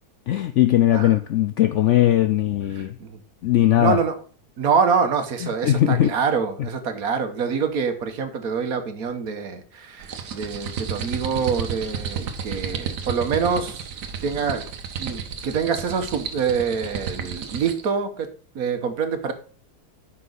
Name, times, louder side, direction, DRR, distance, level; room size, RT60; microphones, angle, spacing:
voice 1, 0.3-3.0 3.4-4.0 5.4-6.1 6.6-6.7, left 12 dB, 70° left, 0.7 m, -19 dB
voice 2, 3.8-4.1 4.6-13.9 14.2-14.6 15.0-18.3 18.5-19.3, right 6 dB, 65° right, 1.5 m, -25 dB
sound 1, 10.0-17.9, right 6 dB, 90° right, 1.6 m, -32 dB
9.5 x 5.9 x 3.9 m
omnidirectional pair, 1.7 m